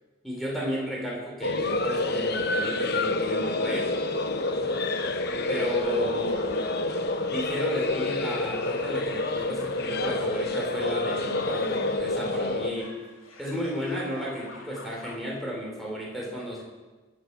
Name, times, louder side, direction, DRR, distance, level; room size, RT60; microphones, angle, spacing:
voice 1, 0.2-3.9 5.5-6.4 7.3-12.9 13.4-16.6, equal, ahead, -3 dB, 4.3 m, -33 dB
sound 1, 1.4-12.7, left 2 dB, 50° left, 1.0 m, -28 dB
sound 2, 4.0-15.2, left 3 dB, 80° left, 2.6 m, -45 dB
23.0 x 8.6 x 7.0 m, 1.2 s
head